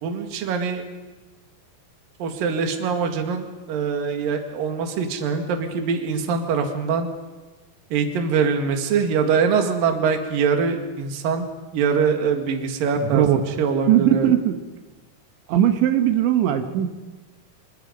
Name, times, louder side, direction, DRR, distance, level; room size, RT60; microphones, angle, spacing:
voice 1, 0.0-0.8 2.2-7.1 7.9-11.5 11.7-13.3 13.6-14.3, right 5 dB, 55° right, 5 dB, 3.4 m, -23 dB
voice 2, 13.0-13.5 13.9-14.6 15.5-16.9, right 11 dB, 85° right, 7 dB, 3.7 m, -19 dB
27.0 x 25.5 x 5.3 m, 1.2 s
omnidirectional pair, 5.1 m